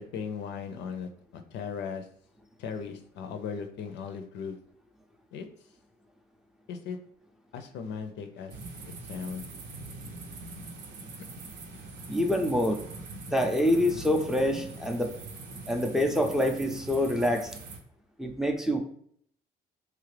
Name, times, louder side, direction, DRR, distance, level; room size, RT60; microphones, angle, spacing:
voice 1, 0.0-2.0 2.6-4.6 5.3-5.5 6.7-7.0 7.5-8.5 9.1-9.4 11.7-11.8, left 6 dB, 80° left, 7 dB, 0.4 m, -37 dB
sound 1, 8.5-17.8, right 2 dB, 75° right, 0.6 m, -42 dB
voice 2, 12.1-12.8 13.3-15.1 15.7-17.5 18.2-18.8, left 1 dB, 5° right, 3 dB, 0.4 m, -26 dB
3.1 x 2.4 x 3.2 m, 0.64 s
cardioid pair, 110°, 18 cm